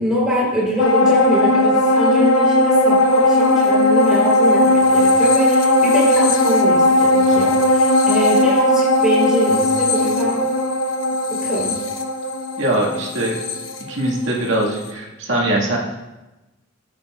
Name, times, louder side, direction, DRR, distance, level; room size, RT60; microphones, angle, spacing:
voice 1, 0.0-10.4 11.3-11.8, equal, 5° right, -7 dB, 3.9 m, -23 dB
sound 1, 0.8-14.5 14.9-15.0, left 1 dB, 80° left, 1.0 m, -17 dB
voice 2, 12.6-13.4 13.9-15.8, right 1 dB, 70° right, -3 dB, 2.0 m, -21 dB
15.0 x 8.6 x 2.5 m, 1.1 s
head